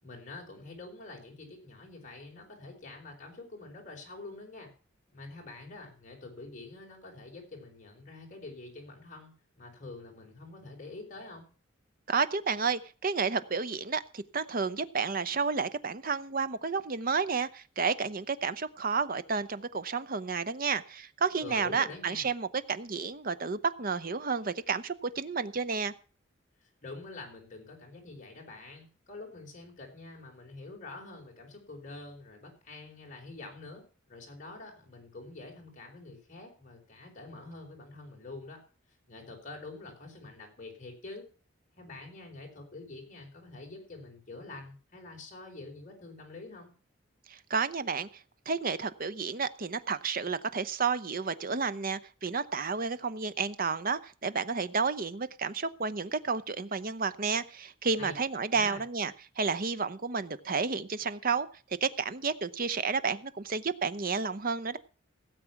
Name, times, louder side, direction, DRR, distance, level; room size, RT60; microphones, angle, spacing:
voice 1, 0.0-4.7 5.1-11.5 21.4-22.3 26.6-38.6 39.1-41.3 41.8-46.7 58.0-58.1 58.5-58.8, left 3 dB, 40° left, 0 dB, 4.4 m, -46 dB
voice 2, 12.1-25.9 47.3-61.5 61.8-64.8, right 5 dB, 45° right, 14 dB, 0.7 m, -31 dB
17.0 x 7.6 x 5.9 m, 0.39 s
head